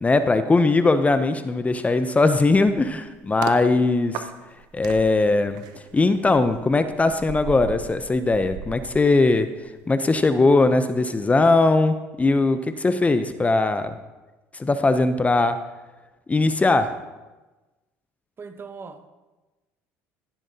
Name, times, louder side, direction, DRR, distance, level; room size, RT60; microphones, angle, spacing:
voice 1, 0.0-4.3 4.7-5.6 5.9-9.5 9.9-13.9 14.6-15.6 16.3-16.9, left 3 dB, 20° left, 0.6 m, -20 dB
sound 1, 2.3-3.6 4.1-9.7 10.0-10.3, right 8 dB, 70° right, 0.7 m, -38 dB
voice 2, 18.4-19.1, right 5 dB, 35° right, 0.9 m, -39 dB
15.0 x 7.3 x 2.8 m
supercardioid pair, 75°, 7 cm